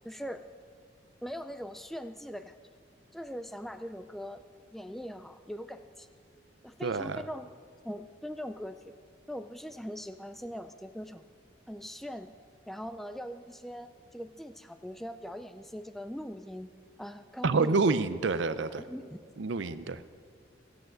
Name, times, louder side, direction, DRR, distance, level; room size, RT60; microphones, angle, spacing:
voice 1, 0.0-0.5 1.2-2.5 3.1-4.4 4.7-6.1 6.6-7.5 7.8-8.9 9.3-11.2 11.7-12.3 12.7-16.7 17.0-17.9 18.8-19.2, equal, ahead, 9 dB, 0.3 m, -41 dB
voice 2, 6.8-7.2 17.4-18.8 19.4-20.0, right 4 dB, 75° right, 13 dB, 0.5 m, -28 dB
16.5 x 7.9 x 7.6 m, 2.2 s
head